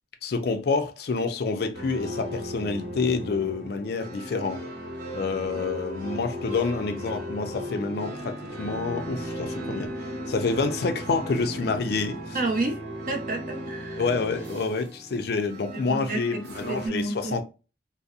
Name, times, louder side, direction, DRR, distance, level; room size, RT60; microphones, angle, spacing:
voice 1, 0.2-4.6 5.1-9.9 10.3-12.4 14.0-17.4, left 4 dB, 60° left, 0.4 m, -28 dB
sound 1, 1.7-16.9, equal, 75° right, 0.9 m, -36 dB
voice 2, 12.3-12.8 13.1-14.0 15.7-16.4 16.7-17.4, right 2 dB, 50° right, 0.6 m, -30 dB
2.6 x 2.0 x 2.4 m
head